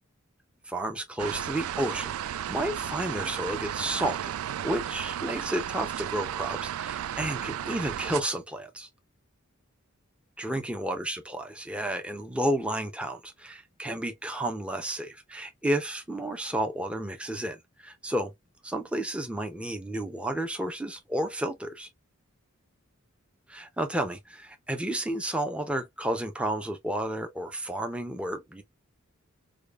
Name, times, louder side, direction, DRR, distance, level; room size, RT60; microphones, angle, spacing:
voice 1, 0.7-8.9 10.4-18.3 18.6-21.9 23.5-28.6, right 1 dB, 5° right, 0.5 m, -32 dB
sound 1, 1.2-8.2, right 10 dB, 90° right, 0.3 m, -34 dB
5.0 x 2.2 x 2.3 m
head